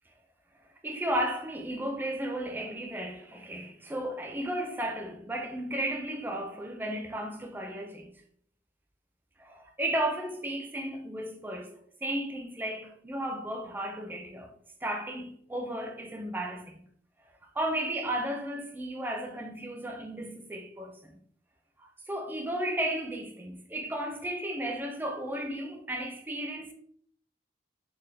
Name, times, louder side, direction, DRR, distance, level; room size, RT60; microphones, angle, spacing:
voice 1, 0.8-8.1 9.4-11.7 12.0-14.5 14.8-16.9 17.5-21.1 21.8-26.7, right 1 dB, 10° right, 0.4 m, -34 dB
4.0 x 2.1 x 3.2 m
head